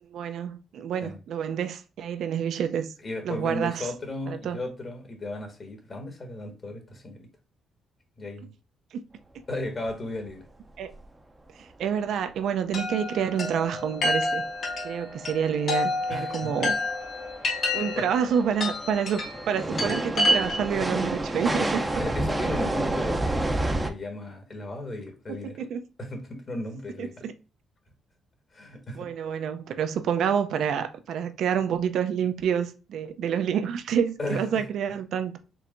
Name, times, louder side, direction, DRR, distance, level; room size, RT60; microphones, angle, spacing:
voice 1, 0.0-2.9 3.2-3.9 4.3-4.6 8.9-9.0 10.8-10.9 11.6-14.4 14.8-16.7 17.7-19.2 19.5-21.8 25.3-25.8 27.0-27.3 28.9-35.4, right 8 dB, 75° right, 0.6 m, -28 dB
voice 2, 3.0-7.3 8.2-8.5 9.5-10.4 16.1-16.5 17.7-18.1 21.6-21.7 22.0-25.6 26.0-27.3 28.5-29.1 34.2-34.6, left 2 dB, 35° left, 1.6 m, -35 dB
sound 1, 9.6-9.7 9.9-10.0 10.3-10.5 10.9-11.0 14.1-14.2 14.7-23.9, right 1 dB, 15° right, 0.6 m, -30 dB
Chime, 12.7-20.8, left 1 dB, 55° left, 1.7 m, -29 dB
4.6 x 3.3 x 2.6 m
cardioid pair, 90°, 0 cm